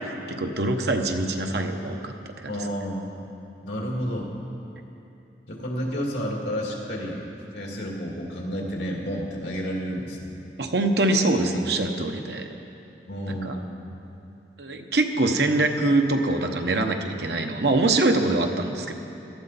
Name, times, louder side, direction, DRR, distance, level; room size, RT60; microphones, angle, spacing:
voice 1, 0.0-2.1 2.4-2.5 10.6-12.5 13.3-13.6 14.6-18.9, right 2 dB, 65° right, 4 dB, 0.9 m, -24 dB
voice 2, 2.5-3.2 3.6-4.3 5.5-7.2 7.5-10.3 13.1-13.8, equal, 75° left, -1 dB, 2.2 m, -31 dB
18.0 x 12.5 x 4.1 m, 2.8 s
head